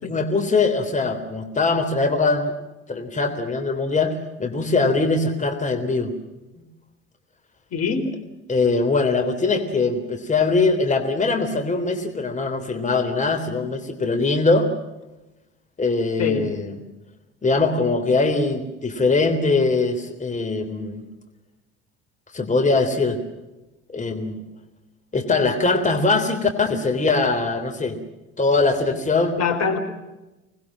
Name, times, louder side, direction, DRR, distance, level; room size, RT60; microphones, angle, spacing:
voice 1, 0.0-2.5 2.9-6.1 6.6-6.7 8.5-14.7 15.8-16.8 17.4-21.0 22.3-23.2 23.9-24.4 25.1-28.0 28.4-29.4, left 3 dB, 25° left, 6 dB, 3.6 m, -22 dB
voice 2, 7.7-8.1 16.2-16.5 29.4-29.8, left 5 dB, 50° left, 7 dB, 4.2 m, -23 dB
26.5 x 20.0 x 7.5 m, 1.0 s
hypercardioid pair, 70°, 32 cm